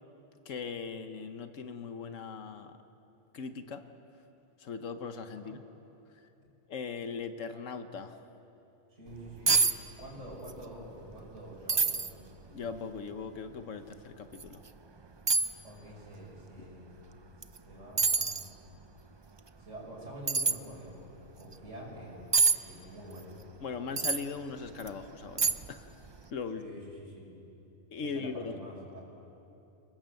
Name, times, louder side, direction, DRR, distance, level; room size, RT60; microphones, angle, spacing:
voice 1, 0.4-2.8 3.3-3.8 4.6-5.6 6.7-8.2 12.5-14.6 23.6-25.9 26.3-26.6 27.9-28.5, left 5 dB, 85° left, 8 dB, 1.4 m, -39 dB
voice 2, 8.9-9.6 10.0-12.1 15.6-16.9 17.6-18.5 19.6-21.1 21.3-22.3 22.6-23.3 26.5-27.4 28.0-29.0, equal, 75° right, -3 dB, 6.2 m, -46 dB
sound 1, 9.1-9.2 9.5-9.8 10.0-10.6 10.9-11.0 11.7-12.1 12.8-12.9 14.3-14.5 15.3-15.5 17.4-17.6 18.0-18.5 20.3-20.6 22.3-22.6 24.0-24.2 24.8-24.9 25.4-25.8 26.1-26.2, right 4 dB, 35° right, 0.5 m, -26 dB
27.0 x 19.0 x 7.7 m, 2.9 s
omnidirectional pair, 1.3 m